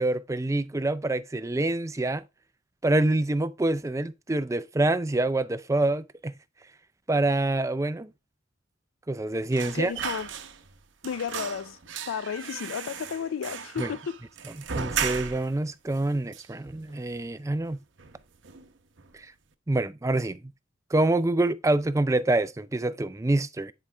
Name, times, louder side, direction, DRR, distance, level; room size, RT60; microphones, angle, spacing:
voice 1, 0.0-2.2 2.8-6.3 7.1-8.1 9.1-9.9 13.8-13.9 14.5-17.8 19.1-19.3 19.7-20.4 20.9-23.7, right 2 dB, 15° right, 0.4 m, -26 dB
sound 1, 9.5-10.8 11.0-15.6 15.9-16.0 16.3-17.1 17.5-17.7 18.0-18.7 19.0-19.2, right 7 dB, 65° right, 0.8 m, -36 dB
voice 2, 9.7-10.3 11.0-11.8 12.1-14.1, left 7 dB, 85° left, 0.4 m, -33 dB
9.9 x 4.9 x 3.4 m
head